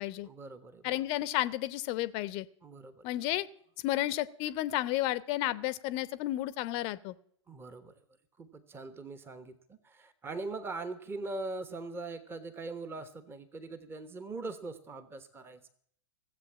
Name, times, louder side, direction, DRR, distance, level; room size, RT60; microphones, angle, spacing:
voice 1, 0.2-1.0 2.6-3.0 7.5-7.9 8.4-15.7, right 3 dB, 15° right, 12 dB, 1.0 m, -41 dB
voice 2, 0.8-2.5 3.0-3.5 3.8-7.1, left 15 dB, 35° left, 18 dB, 0.7 m, -32 dB
16.0 x 8.0 x 7.4 m, 0.64 s
figure-of-eight pair, 100°, 16 cm